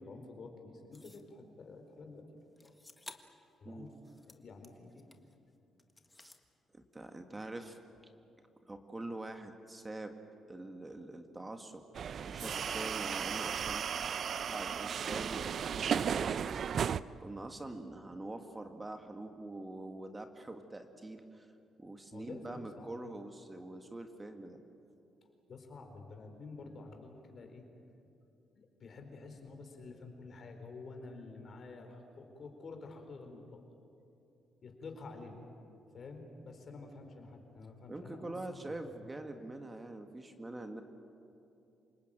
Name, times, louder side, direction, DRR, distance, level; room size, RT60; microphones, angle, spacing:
voice 1, 0.0-2.2 2.6-2.7 3.6-3.9 4.2-5.1 22.1-22.9 25.5-27.6 28.5-33.6 34.6-35.4 35.9-38.3 38.7-38.9, left 3 dB, 50° left, 4 dB, 4.3 m, -49 dB
sound 1, 0.9-1.3 2.6-3.4 3.9-5.4 5.8-6.4, left 2 dB, 15° left, 1.6 m, -55 dB
voice 2, 6.7-7.8 8.6-10.1 10.5-11.8 12.2-14.0 14.4-16.5 17.2-21.5 21.8-24.6 37.9-40.8, right 2 dB, 20° right, 6 dB, 1.7 m, -45 dB
sound 2, 11.9-17.0, right 7 dB, 55° right, 0.5 m, -35 dB
27.5 x 19.0 x 9.0 m, 2.7 s
cardioid pair, 90°, 0 cm